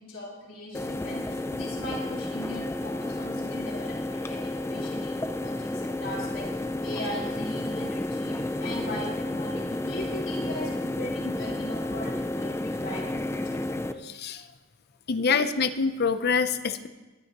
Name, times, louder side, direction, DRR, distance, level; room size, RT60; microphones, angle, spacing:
voice 1, 0.0-13.7 15.3-15.5, left 1 dB, 70° left, -5 dB, 4.1 m, -39 dB
sound 1, 0.7-13.9, left 1 dB, 15° left, 0.5 m, -31 dB
voice 2, 14.0-14.5 15.1-16.9, left 5 dB, 50° left, 11 dB, 0.6 m, -25 dB
20.0 x 11.5 x 3.0 m, 1.2 s
head